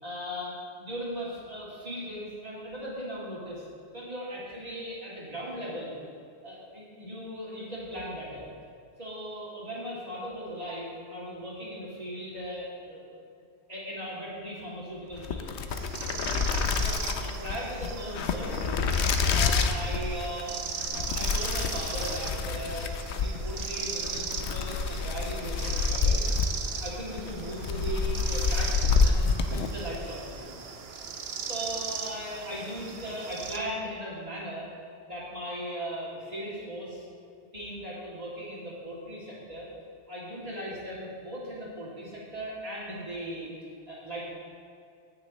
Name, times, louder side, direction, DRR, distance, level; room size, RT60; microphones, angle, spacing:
voice 1, 0.0-3.6 3.9-6.0 6.4-8.4 9.0-13.0 13.7-15.6 16.8-18.9 19.3-20.6 20.9-26.2 26.8-30.7 31.5-34.7 35.0-37.1 37.5-39.7 40.1-43.5 43.9-44.2, equal, 35° right, -7 dB, 2.7 m, -38 dB
sound 1, 15.1-30.1, left 5 dB, 85° left, 0.9 m, -28 dB
sound 2, 15.7-33.6, right 6 dB, 65° right, 1.0 m, -38 dB
17.5 x 6.6 x 3.1 m, 2.4 s
omnidirectional pair, 1.1 m